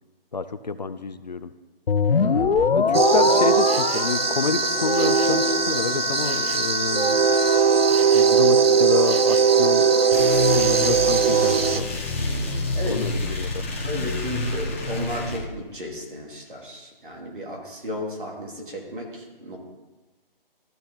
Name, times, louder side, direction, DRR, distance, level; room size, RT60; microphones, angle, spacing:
voice 1, 0.3-1.5 2.7-7.2 8.1-9.8 10.4-12.0 12.8-13.6, left 4 dB, 45° left, 12 dB, 0.5 m, -28 dB
sound 1, 1.9-7.6, left 5 dB, 80° left, 0.8 m, -24 dB
voice 2, 2.2-2.9 12.7-13.0 13.8-19.6, equal, 60° right, -1 dB, 2.8 m, -34 dB
sound 2, 2.9-11.8, right 5 dB, 80° right, 0.8 m, -20 dB
sound 3, 10.1-15.4, left 2 dB, 15° left, 0.8 m, -28 dB
13.0 x 6.7 x 4.0 m, 1.2 s
hypercardioid pair, 170°, 29 cm